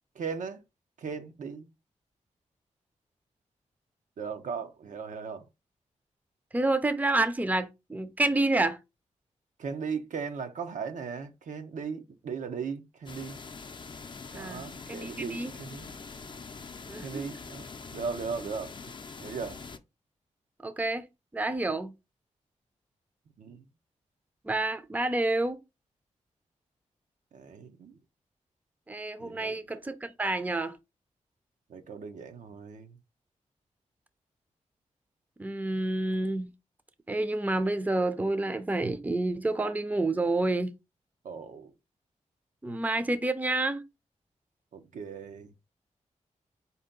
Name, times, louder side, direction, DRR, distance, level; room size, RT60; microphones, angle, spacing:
voice 1, 0.1-0.6 1.0-1.7 4.2-5.5 9.6-13.4 14.3-16.0 17.0-17.7 17.9-18.9 19.2-19.7 23.4-23.6 27.3-28.0 29.2-29.6 31.7-33.0 41.2-41.7 44.7-45.5, right 5 dB, 80° right, 0.7 m, -37 dB
voice 2, 6.5-8.8 14.3-15.5 16.9-17.2 20.6-21.1 21.3-21.9 24.4-25.6 28.9-30.8 35.4-36.5 37.1-40.7 42.6-43.9, right 2 dB, 10° right, 0.5 m, -29 dB
sound 1, 13.1-19.8, left 4 dB, 40° left, 0.5 m, -44 dB
4.3 x 2.8 x 3.7 m
cardioid pair, 70°, 13 cm